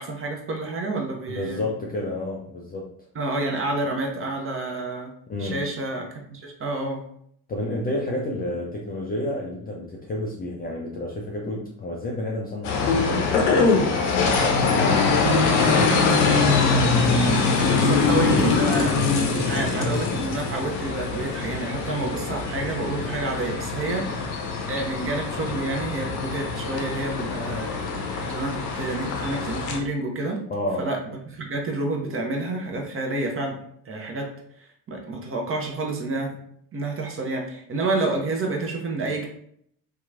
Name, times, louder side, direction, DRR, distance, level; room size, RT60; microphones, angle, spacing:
voice 1, 0.0-1.6 3.1-5.1 5.4-7.0 15.6-16.7 17.8-19.0 19.3-27.7 28.2-30.4 30.8-31.0 31.3-33.6 33.9-34.3 34.9-36.4 36.7-39.3, right 2 dB, 25° right, 2 dB, 0.7 m, -29 dB
voice 2, 1.3-2.9 5.3-5.7 7.5-14.9 30.5-30.9, left 1 dB, 20° left, -2 dB, 0.3 m, -31 dB
sound 1, 12.6-29.8, left 4 dB, 70° left, 0.7 m, -23 dB
2.9 x 2.3 x 2.4 m, 0.67 s
hypercardioid pair, 55°, 48 cm